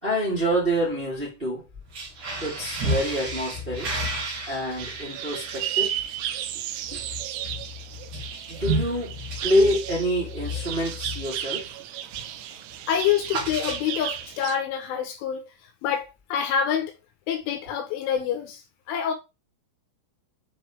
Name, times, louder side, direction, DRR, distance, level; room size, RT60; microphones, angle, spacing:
voice 1, 0.0-1.7 2.4-3.9 4.5-6.0 6.9-7.0 8.5-9.1 9.4-11.7, equal, 15° right, 2.5 m, -26 dB
sound 1, 1.8-11.8 12.1-12.4 12.6-14.2, right 1 dB, 45° right, 2.9 m, -33 dB
sound 2, 4.8-14.6, right 11 dB, 85° right, 2.9 m, -34 dB
voice 2, 12.9-15.4 15.8-16.1 16.3-16.9 17.3-18.6 18.9-19.1, left 8 dB, 80° left, 3.2 m, -26 dB
8.0 x 4.5 x 3.4 m
omnidirectional pair, 5.9 m